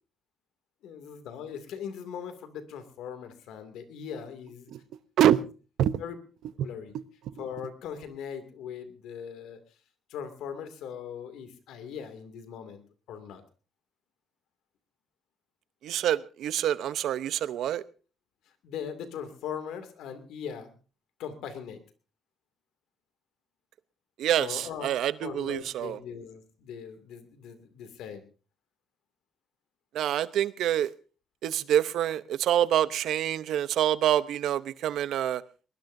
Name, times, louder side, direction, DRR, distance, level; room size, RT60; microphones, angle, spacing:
voice 1, 0.8-4.7 6.0-6.2 6.6-6.9 7.4-9.6 10.1-12.8 13.1-13.4 18.6-20.7 21.2-21.8 24.4-28.2, left 7 dB, 85° left, 2.4 m, -40 dB
voice 2, 15.8-17.8 24.2-26.0 29.9-30.9 31.4-35.4, right 11 dB, 80° right, 0.8 m, -26 dB
21.0 x 20.0 x 2.7 m
cardioid pair, 90°, 0 cm